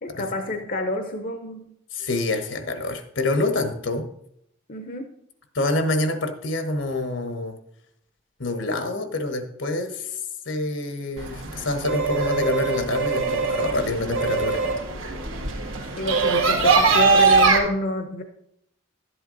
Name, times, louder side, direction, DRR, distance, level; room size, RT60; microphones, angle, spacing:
voice 1, 0.0-1.6 4.7-5.1 16.0-18.2, left 1 dB, 45° left, 6 dB, 0.7 m, -28 dB
voice 2, 1.9-4.1 5.5-7.6 8.4-10.2 10.5-14.6, left 2 dB, 70° left, 7 dB, 1.2 m, -26 dB
sound 1, 11.2-17.6, right 4 dB, 90° right, 1.6 m, -22 dB
12.0 x 7.9 x 3.9 m, 0.74 s
head